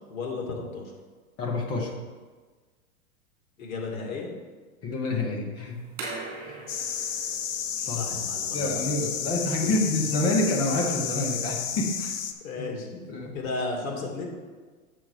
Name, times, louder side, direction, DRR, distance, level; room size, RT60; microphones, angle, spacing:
voice 1, 0.1-0.9 3.6-4.3 7.9-8.9 9.5-9.7 10.2-10.3 12.4-12.9 13.3-14.3, left 3 dB, 70° left, 0 dB, 2.6 m, -34 dB
voice 2, 1.4-1.9 4.8-5.9 6.4-6.7 7.8-8.1 8.5-12.1 12.9-13.4, left 2 dB, 10° left, 2 dB, 0.5 m, -28 dB
sound 1, 5.7-12.4, right 3 dB, 30° right, 2.7 m, -44 dB
sound 2, 6.7-12.3, left 8 dB, 85° left, 1.0 m, -31 dB
7.5 x 6.5 x 4.8 m, 1.4 s
supercardioid pair, 165°, 43 cm